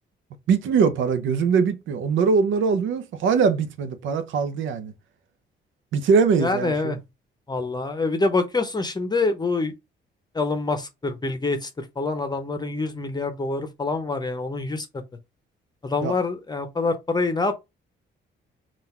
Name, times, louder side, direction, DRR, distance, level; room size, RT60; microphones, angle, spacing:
voice 1, 0.5-4.9 5.9-7.0 16.0-16.1, right 5 dB, 75° right, 0.7 m, -22 dB
voice 2, 6.4-7.0 7.5-9.7 10.3-14.9 15.8-17.6, left 3 dB, 20° left, 0.7 m, -26 dB
3.8 x 2.5 x 4.2 m
cardioid pair, 90°, 20 cm